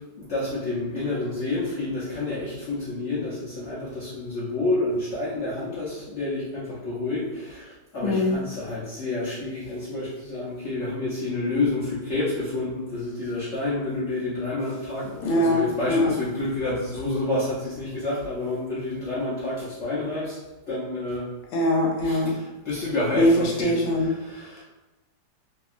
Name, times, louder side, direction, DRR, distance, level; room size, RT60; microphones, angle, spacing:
voice 1, 0.0-20.4 20.7-21.3 22.0-24.6, left 2 dB, 60° left, -9 dB, 0.7 m, -29 dB
voice 2, 8.0-8.3 15.2-16.1 21.5-22.4 23.1-24.1, left 1 dB, 90° left, 1 dB, 1.3 m, -22 dB
2.7 x 2.6 x 2.4 m, 1.1 s
omnidirectional pair, 1.9 m